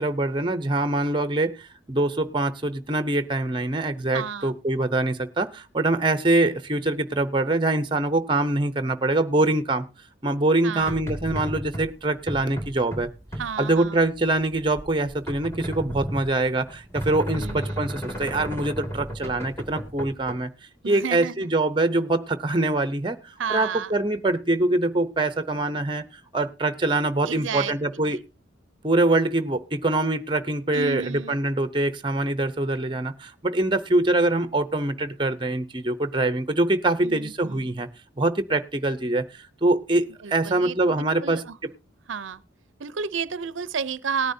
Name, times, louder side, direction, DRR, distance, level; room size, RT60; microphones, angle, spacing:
voice 1, 0.0-9.9 10.2-13.1 13.6-20.5 20.9-26.0 26.3-28.2 28.8-37.9 38.2-41.7, right 2 dB, 25° right, 12 dB, 0.7 m, -24 dB
voice 2, 4.1-4.5 10.6-11.0 13.4-14.0 17.4-17.8 20.8-21.5 23.4-23.9 27.2-27.7 28.0-28.2 30.7-31.4 37.0-37.7 40.2-41.6 42.1-42.4 42.8-44.3, right 6 dB, 80° right, 17 dB, 0.6 m, -32 dB
sound 1, 10.8-20.3, equal, 15° left, 2.1 m, -34 dB
18.5 x 10.0 x 2.7 m, 0.29 s
head